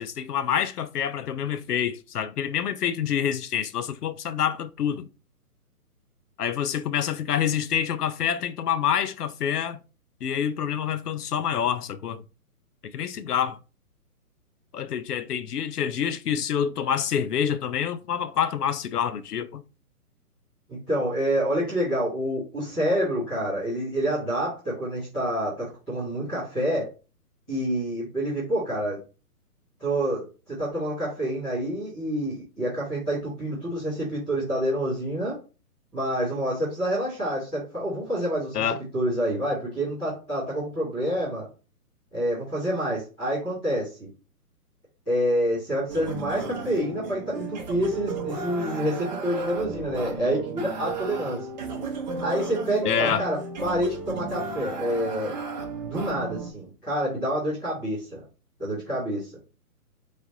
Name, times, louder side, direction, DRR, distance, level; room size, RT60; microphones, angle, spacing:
voice 1, 0.0-5.1 6.4-9.8 10.2-12.2 12.9-13.6 14.7-19.6 38.5-38.8 52.9-53.3, left 8 dB, 80° left, 0.6 m, -27 dB
voice 2, 20.7-26.9 27.5-29.0 29.8-35.4 35.9-38.6 38.9-41.5 42.1-44.1 45.1-51.5 52.2-55.3 55.8-58.2 58.6-59.3, equal, ahead, 0.5 m, -27 dB
sound 1, 45.9-56.5, right 3 dB, 30° right, 0.7 m, -34 dB
4.1 x 3.1 x 2.6 m
hypercardioid pair, 140°, 46 cm